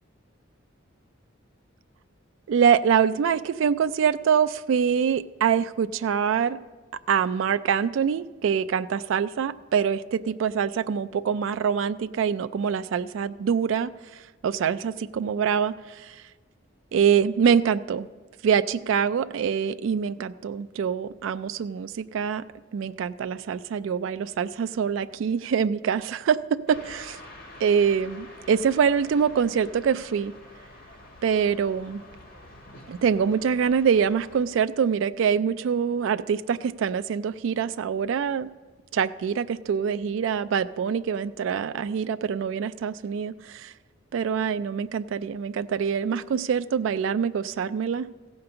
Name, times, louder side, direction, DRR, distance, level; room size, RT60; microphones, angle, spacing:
voice 1, 2.5-6.6 7.1-13.9 14.4-16.1 16.9-18.1 18.4-22.4 22.7-27.2 27.6-30.3 31.2-32.0 32.9-38.5 38.9-43.7 44.1-48.1, right 7 dB, 70° right, 12 dB, 0.3 m, -24 dB
sound 1, 26.7-34.4, left 1 dB, 50° left, 1.5 m, -47 dB
15.0 x 5.2 x 6.8 m, 1.3 s
head